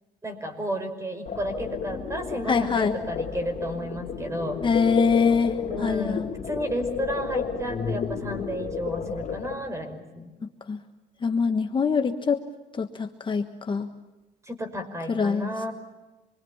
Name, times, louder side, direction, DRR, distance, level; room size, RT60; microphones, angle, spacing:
voice 1, 0.2-4.6 5.7-10.3 14.5-15.7, equal, 15° right, 8 dB, 5.3 m, -32 dB
sound 1, 1.3-9.6, left 6 dB, 45° left, 3.1 m, -32 dB
voice 2, 2.5-2.9 4.6-6.3 10.7-10.8 11.2-12.4 12.8-13.9 15.1-15.5, left 5 dB, 30° left, 6 dB, 1.4 m, -24 dB
27.0 x 23.5 x 7.2 m, 1.1 s
cardioid pair, 110°, 17 cm